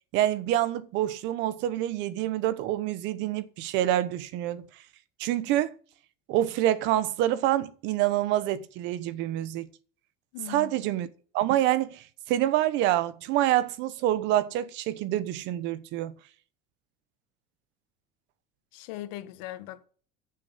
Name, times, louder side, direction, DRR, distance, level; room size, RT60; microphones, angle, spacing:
voice 1, 0.1-4.6 5.2-5.7 6.3-9.7 10.5-11.1 11.3-16.1, right 13 dB, 60° right, 1.0 m, -27 dB
voice 2, 10.3-10.7 18.7-19.9, left 14 dB, 85° left, 1.5 m, -39 dB
15.0 x 6.8 x 5.7 m
cardioid pair, 160°, 21 cm